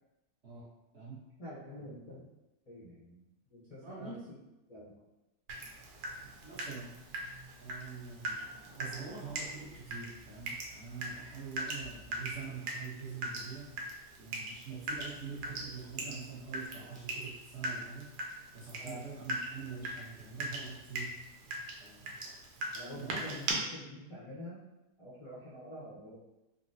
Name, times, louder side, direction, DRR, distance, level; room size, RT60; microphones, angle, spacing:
voice 1, 1.4-2.3 2.7-3.2 3.5-4.4 4.7-4.9 18.8-19.0 22.7-24.6 25.0-26.2, left 1 dB, 60° left, -10 dB, 0.3 m, -47 dB
voice 2, 3.8-4.2 6.2-7.0 7.6-8.5 8.8-13.7 14.2-21.2 21.8-22.1 22.9-23.4, right 5 dB, 50° right, -7 dB, 0.9 m, -45 dB
Water tap faucet / Drip, 5.5-23.5, right 2 dB, 85° right, 1.3 m, -41 dB
3.8 x 2.1 x 2.6 m, 0.95 s
omnidirectional pair, 1.9 m